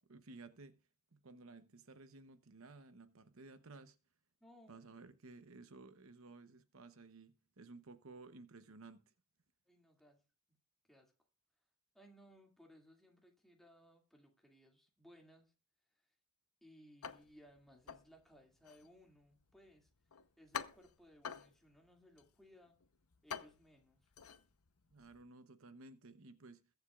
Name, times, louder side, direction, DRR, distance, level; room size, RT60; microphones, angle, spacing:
voice 1, 0.1-0.8 1.1-4.0 4.7-9.1 24.9-26.7, right 3 dB, 70° right, 0.9 m, -56 dB
voice 2, 4.4-4.9 9.7-10.2 10.9-11.1 11.9-15.5 16.6-19.9 20.4-22.8 23.2-24.1, equal, ahead, 2.3 m, -63 dB
sound 1, 17.0-25.2, left 7 dB, 90° left, 0.9 m, -50 dB
21.5 x 8.0 x 2.4 m
head